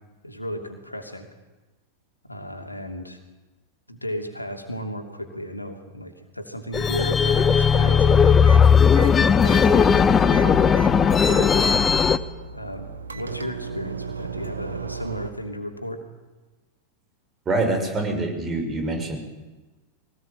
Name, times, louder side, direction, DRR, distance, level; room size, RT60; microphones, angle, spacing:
voice 1, 0.2-1.3 2.3-3.2 3.9-8.4 8.9-11.8 12.5-16.0, equal, 85° left, 5 dB, 2.8 m, -34 dB
sound 1, 6.7-12.2, left 6 dB, 20° left, 1.2 m, -17 dB
sound 2, 8.0-15.3, right 6 dB, 75° right, 1.7 m, -36 dB
voice 2, 17.4-19.2, right 2 dB, 20° right, 4 dB, 6.5 m, -25 dB
23.5 x 18.5 x 9.1 m, 1.2 s
figure-of-eight pair, 90°, 0 cm